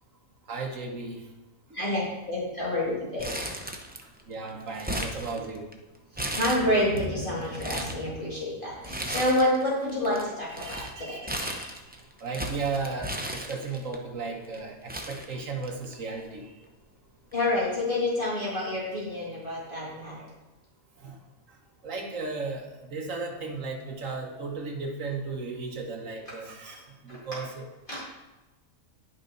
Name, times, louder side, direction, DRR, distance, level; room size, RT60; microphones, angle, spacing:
voice 1, 0.5-1.2 4.3-5.7 10.6-11.7 12.2-16.4 21.0-21.2 21.8-27.7, right 4 dB, 65° right, 1 dB, 1.6 m, -35 dB
voice 2, 1.7-3.3 6.1-11.3 17.3-20.2 27.9-28.0, left 1 dB, 35° left, -7 dB, 2.2 m, -28 dB
Crumpling crinkling, 3.2-4.2 4.5-5.7 6.1-7.0 7.4-8.0 8.8-9.6 9.9-13.9 14.5-14.6 14.9-15.9 16.2-16.3 17.3-17.6, equal, 15° right, 0.4 m, -35 dB
10.5 x 6.0 x 4.0 m, 1.1 s
omnidirectional pair, 1.5 m